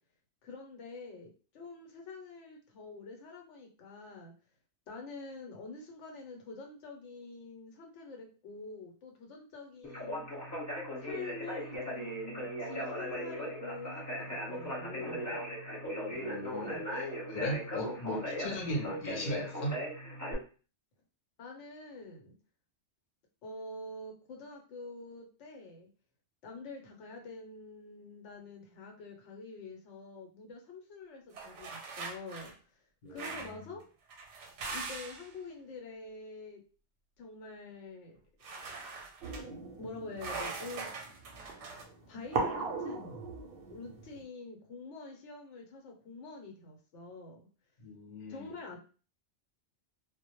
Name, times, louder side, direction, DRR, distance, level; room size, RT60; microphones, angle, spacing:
voice 1, 0.4-4.3 4.9-10.3 11.0-15.4 21.4-22.3 23.4-25.9 26.4-32.8 33.1-33.8 34.7-36.6 37.2-38.2 38.6-38.8 39.4-40.9 42.1-43.0 43.7-47.4 48.3-48.8, left 3 dB, 85° left, 1 dB, 1.0 m, -46 dB
Conversation, 9.8-20.3, equal, 15° left, 0.8 m, -38 dB
voice 2, 16.1-17.1 17.3-19.9 33.0-33.3 47.8-48.5, left 1 dB, 55° left, 1 dB, 0.7 m, -38 dB
sound 1, 31.3-32.5 33.2-33.6 34.1-35.3 38.4-39.4 40.2-41.8, right 4 dB, 90° right, 0.9 m, -42 dB
sound 2, 39.2-44.2, right 3 dB, 60° right, 0.7 m, -39 dB
2.1 x 2.0 x 2.9 m, 0.37 s
omnidirectional pair, 1.2 m